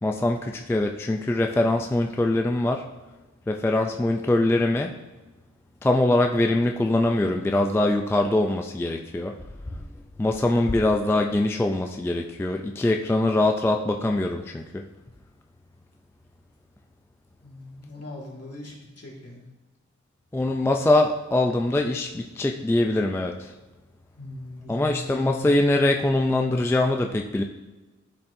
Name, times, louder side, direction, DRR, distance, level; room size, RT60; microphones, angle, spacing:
voice 1, 0.0-2.8 3.5-4.9 5.8-9.3 10.2-14.8 20.3-23.5 24.7-27.4, left 2 dB, 10° left, 4 dB, 0.3 m, -23 dB
voice 2, 17.4-19.5 24.1-25.2, left 1 dB, 55° left, -2 dB, 1.9 m, -41 dB
12.0 x 4.3 x 2.6 m, 1.2 s
wide cardioid pair, 130°, 29 cm